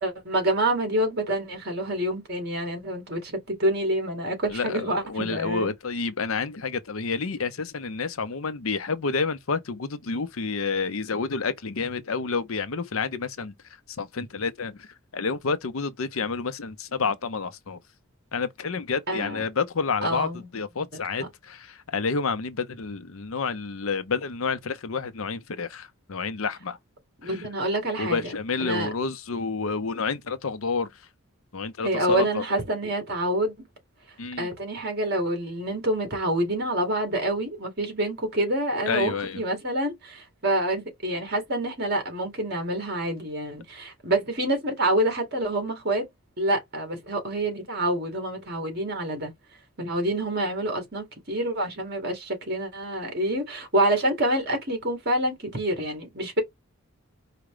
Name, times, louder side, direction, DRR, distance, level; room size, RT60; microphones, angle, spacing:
voice 1, 0.0-5.7 19.1-19.4 20.0-20.5 21.2-21.3 27.2-28.3 28.6-28.9 31.8-33.7 34.4-46.1 46.4-49.3 49.8-56.4, right 1 dB, 50° right, 2.2 m, -27 dB
voice 2, 4.5-13.5 14.0-14.9 15.1-17.8 18.3-26.8 27.2-27.4 28.0-30.9 31.5-32.4 34.2-34.5 38.9-39.4, left 4 dB, 70° left, 0.7 m, -29 dB
4.9 x 2.2 x 4.9 m
head